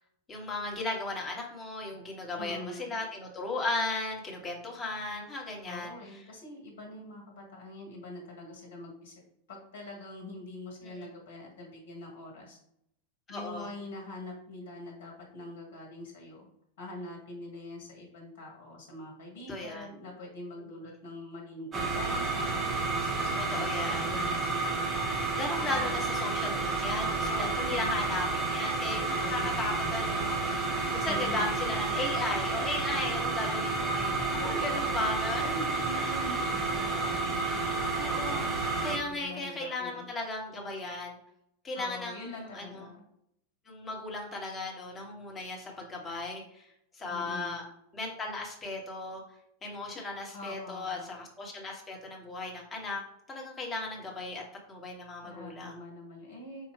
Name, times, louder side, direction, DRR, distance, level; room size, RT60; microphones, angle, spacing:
voice 1, 0.3-6.2 10.8-11.1 13.3-13.7 19.5-19.9 23.4-24.1 25.3-30.4 30.6-35.5 36.0-36.4 38.0-41.1 41.6-42.8 43.7-46.6 46.9-47.6 47.9-49.2 49.6-53.0 53.3-54.4 54.7-55.8, left 2 dB, 20° left, 0 dB, 1.3 m, -36 dB
voice 2, 2.4-3.0 5.7-9.1 9.5-12.6 13.3-16.5 16.8-24.4 25.5-26.1 27.3-27.9 29.1-29.6 31.0-31.6 34.3-34.8 35.4-37.1 38.6-40.1 41.7-43.0 47.1-47.6 50.3-51.1 55.2-56.7, left 1 dB, 55° left, 0 dB, 1.3 m, -44 dB
sound 1, 21.7-39.0, right 3 dB, 20° right, 1.0 m, -30 dB
5.4 x 2.6 x 3.3 m, 0.75 s
figure-of-eight pair, 90°, 0 cm